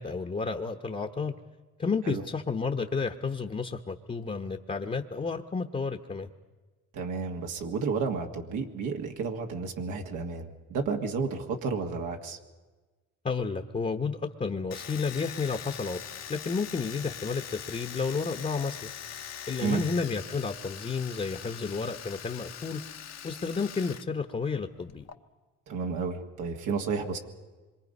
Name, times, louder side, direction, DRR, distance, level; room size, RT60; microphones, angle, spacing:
voice 1, 0.0-1.3 1.8-6.3 13.2-16.0 16.3-18.9 19.5-22.8 23.2-25.1, left 4 dB, 25° left, 4 dB, 1.0 m, -31 dB
voice 2, 6.9-12.4 19.6-19.8 25.7-27.2, right 5 dB, 85° right, 2 dB, 1.8 m, -31 dB
Domestic sounds home sounds, 14.7-24.0 24.3-25.1, left 9 dB, 60° left, 1.1 m, -42 dB
26.0 x 23.0 x 5.4 m, 1.3 s
cardioid pair, 90°, 30 cm